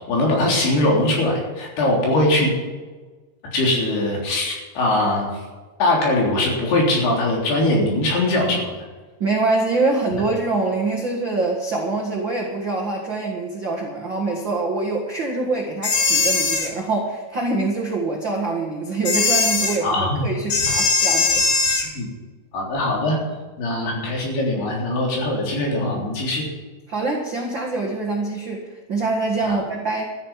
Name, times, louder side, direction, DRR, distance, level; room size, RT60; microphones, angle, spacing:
voice 1, 0.0-2.6 3.5-5.3 5.8-8.7 19.8-20.3 22.0-22.1 22.5-23.2 23.6-26.5 29.4-29.6, left 1 dB, 65° left, -2 dB, 5.5 m, -21 dB
voice 2, 9.2-21.4 26.9-30.0, right 3 dB, 75° right, -1 dB, 1.0 m, -24 dB
sound 1, 15.8-16.7 19.0-19.8 20.5-21.9, left 4 dB, 50° left, 1.6 m, -19 dB
13.5 x 10.5 x 7.3 m, 1.3 s
omnidirectional pair, 5.0 m